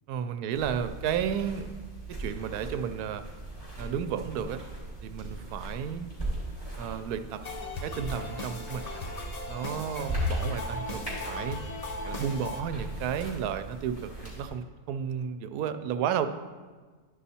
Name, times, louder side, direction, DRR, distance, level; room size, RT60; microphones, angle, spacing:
voice 1, 0.1-1.8 2.1-3.2 3.8-4.6 5.0-6.1 6.8-7.4 7.8-8.8 9.5-11.6 12.0-16.3, right 8 dB, 80° right, 9 dB, 1.1 m, -32 dB
sound 1, 0.5-14.5, right 1 dB, 20° left, 3.3 m, -38 dB
sound 2, 7.4-12.6, left 2 dB, 65° left, 0.4 m, -38 dB
11.5 x 5.6 x 4.2 m, 1.4 s
omnidirectional pair, 1.6 m